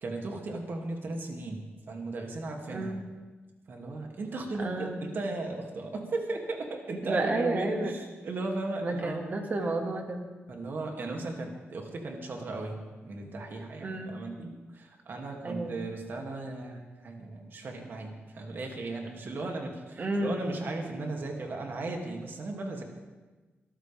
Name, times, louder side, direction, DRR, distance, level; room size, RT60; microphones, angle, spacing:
voice 1, 0.0-3.0 3.7-9.3 10.5-22.8, right 2 dB, 55° right, 1 dB, 2.6 m, -36 dB
voice 2, 2.7-3.0 4.6-5.0 7.0-7.9 8.8-10.3 13.8-14.1 15.4-15.8 20.0-20.5, right 2 dB, 40° right, 3 dB, 2.1 m, -31 dB
24.0 x 14.0 x 3.6 m, 1.2 s
wide cardioid pair, 135°, 4 cm